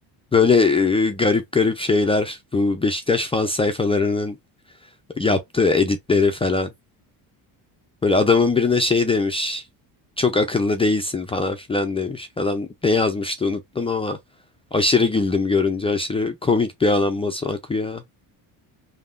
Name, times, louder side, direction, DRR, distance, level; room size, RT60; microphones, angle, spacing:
voice 1, 0.3-4.4 5.2-6.7 8.0-9.6 10.2-14.2 14.7-18.0, left 3 dB, 15° left, 0.3 m, -21 dB
3.5 x 2.1 x 2.4 m
cardioid pair, 95°, 44 cm